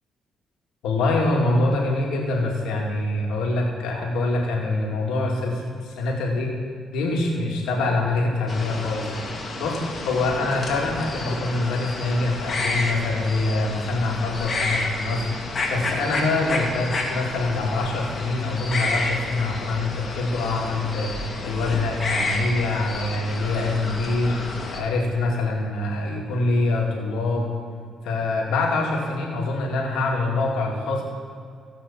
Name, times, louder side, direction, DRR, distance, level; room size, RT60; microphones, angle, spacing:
voice 1, 0.8-6.5 6.9-9.0 9.6-9.8 10.0-27.5 28.0-31.0, left 2 dB, 90° left, -2 dB, 2.2 m, -25 dB
sound 1, 8.5-24.8, left 2 dB, 40° left, 2.0 m, -30 dB
16.0 x 5.7 x 7.2 m, 2.2 s
cardioid pair, 90°, 0 cm